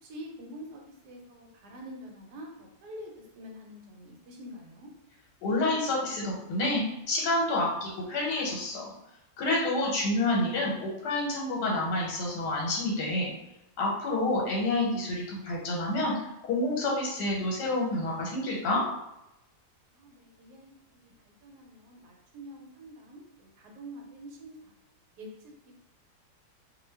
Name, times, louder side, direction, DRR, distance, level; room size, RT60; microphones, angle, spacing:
voice 1, 0.0-4.9 19.9-20.7 21.0-21.1 21.4-24.7 25.2-25.3, equal, 75° right, 1 dB, 1.2 m, -46 dB
voice 2, 5.4-8.9 9.4-13.3 13.8-16.1 16.4-18.8, left 2 dB, 80° left, -2 dB, 1.3 m, -28 dB
2.7 x 2.2 x 3.2 m, 0.89 s
omnidirectional pair, 1.8 m